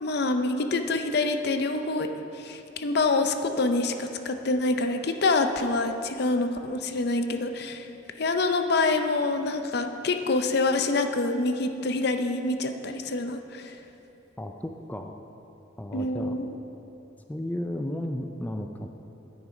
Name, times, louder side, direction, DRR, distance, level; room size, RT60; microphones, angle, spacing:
voice 1, 0.0-2.1 2.3-7.9 8.2-13.7 15.9-16.5, left 3 dB, 55° left, 7 dB, 0.6 m, -26 dB
voice 2, 14.4-15.2 15.8-16.4 17.3-18.9, left 1 dB, 10° left, 4 dB, 0.4 m, -33 dB
9.6 x 8.9 x 5.2 m, 2.9 s
head